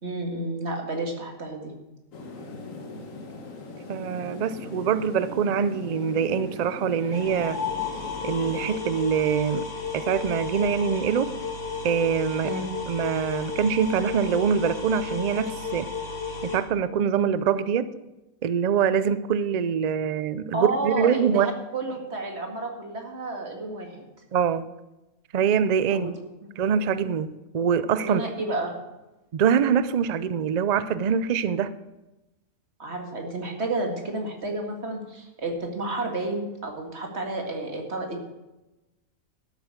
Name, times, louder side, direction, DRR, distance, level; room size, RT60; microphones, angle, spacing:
voice 1, 0.0-1.7 12.4-12.6 20.5-24.1 25.9-26.1 26.4-26.5 28.0-28.7 32.8-38.2, right 2 dB, 50° right, 2.3 m, -31 dB
sound 1, 2.1-8.8, left 3 dB, 70° left, 1.6 m, -39 dB
voice 2, 3.9-7.6 8.2-9.7 9.9-11.3 11.8-12.5 12.9-15.9 16.4-17.9 18.4-21.5 24.3-24.6 25.3-26.1 26.6-28.3 29.3-31.7, right 7 dB, 90° right, 0.3 m, -24 dB
sound 2, 7.1-16.6, left 5 dB, 50° left, 2.5 m, -33 dB
12.5 x 8.4 x 6.4 m
omnidirectional pair, 1.4 m